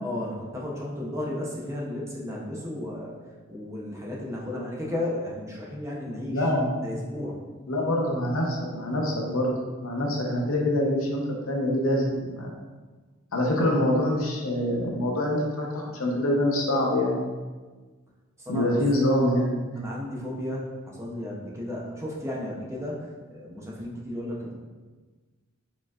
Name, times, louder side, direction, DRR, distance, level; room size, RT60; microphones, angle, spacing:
voice 1, 0.0-3.1 3.5-6.5 6.8-7.4 18.4-18.8 19.8-24.6, left 1 dB, 15° right, -4 dB, 0.7 m, -34 dB
voice 2, 6.2-6.7 7.7-9.5 9.8-12.5 13.3-17.2 18.5-19.8, left 1 dB, 80° left, -1 dB, 0.8 m, -25 dB
4.7 x 3.8 x 2.4 m, 1.3 s
head